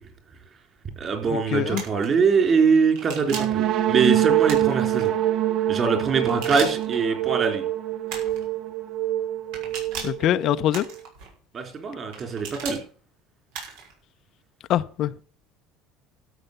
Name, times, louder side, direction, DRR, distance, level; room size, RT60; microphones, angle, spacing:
voice 1, 1.0-5.1 5.7-7.7 11.5-12.8, right 5 dB, 35° right, 3.9 m, -23 dB
voice 2, 1.5-1.8 10.0-10.9 14.7-15.1, left 12 dB, 50° left, 0.6 m, -23 dB
sound 1, 1.7-2.1 2.9-3.6 4.4-5.1 6.2-7.0 8.1-8.5 9.5-10.2 10.7-11.3 12.1-12.8 13.5-13.9, right 5 dB, 85° right, 6.0 m, -37 dB
sound 2, 3.3-11.0, right 12 dB, 55° right, 0.8 m, -25 dB
13.0 x 8.0 x 6.7 m
cardioid pair, 140°, 0 cm